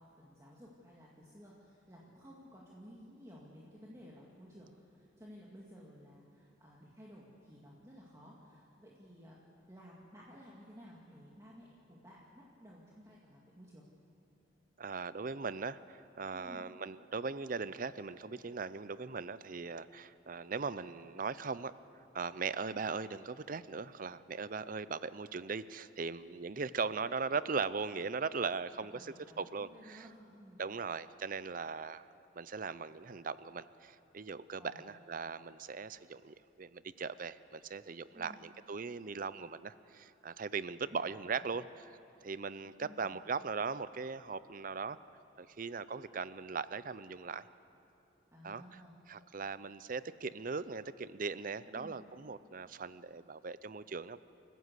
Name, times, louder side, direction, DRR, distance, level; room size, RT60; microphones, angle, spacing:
voice 1, 0.0-9.4 9.7-13.9 16.3-16.7 28.9-30.6 34.6-34.9 38.1-38.4 40.8-41.2 42.8-43.2 48.3-48.9 51.7-52.0, equal, 15° right, -5 dB, 2.2 m, -55 dB
voice 2, 14.8-21.7 22.1-30.0 30.6-32.1 32.3-41.6 42.2-45.0 45.4-47.4 48.4-48.6 49.1-54.2, right 4 dB, 45° right, 16 dB, 0.6 m, -39 dB
28.0 x 14.5 x 8.2 m, 2.7 s
head